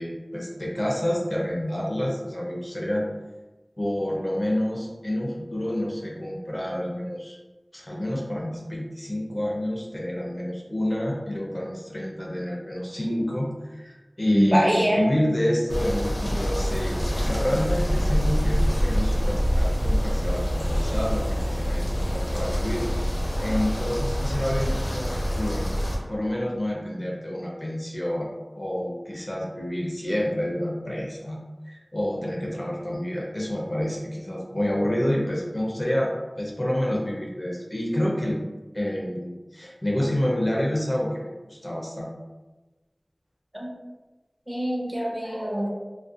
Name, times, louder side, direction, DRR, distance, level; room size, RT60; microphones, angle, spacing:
voice 1, 0.0-3.1 3.8-7.4 7.7-25.7 26.1-28.3 28.5-31.4 31.6-38.4 38.7-42.1, left 1 dB, 35° left, -3 dB, 0.5 m, -28 dB
voice 2, 14.3-15.0 43.5-43.7 44.5-45.7, equal, 25° right, -4 dB, 0.7 m, -24 dB
sound 1, 15.7-26.0, equal, 85° left, 0.6 m, -25 dB
2.5 x 2.1 x 2.4 m, 1.2 s
wide cardioid pair, 45°, 0 cm